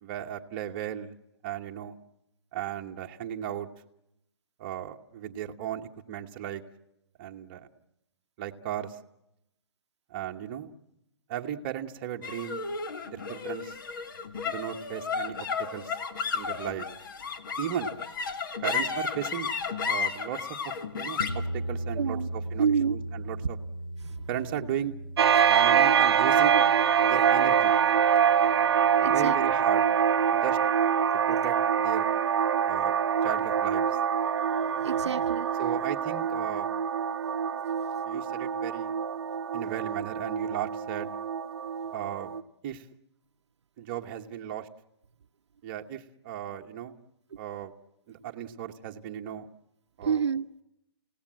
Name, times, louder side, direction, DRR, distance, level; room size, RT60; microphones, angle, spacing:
voice 1, 0.0-1.1 1.4-2.0 2.5-3.7 4.6-6.6 7.2-7.7 8.4-9.0 10.1-10.7 11.3-12.6 13.0-13.8 14.4-15.5 15.7-15.9 16.3-16.9 17.6-17.9 18.6-19.5 19.8-23.6 24.3-25.0 25.5-26.7 27.0-27.7 29.0-29.9 30.3-30.6 31.3-32.1 32.6-33.0 33.2-33.9 35.6-36.7 38.1-38.9 39.5-41.1 41.9-42.3 42.6-42.8 43.8-44.7 45.6-47.0 47.4-47.7 48.1-49.5 50.0-50.2, right 10 dB, 25° right, 3 dB, 1.2 m, -35 dB
sound 1, 12.2-28.8, left 4 dB, 50° left, 1.8 m, -34 dB
voice 2, 22.0-22.3 22.6-23.0 24.0-24.1 29.0-29.4 34.6-35.5 50.0-50.6, right 7 dB, 90° right, 9 dB, 0.8 m, -28 dB
sound 2, 25.2-42.4, right 8 dB, 65° right, 0.9 m, -25 dB
29.0 x 17.5 x 7.5 m, 0.84 s
hypercardioid pair, 170°, 14 cm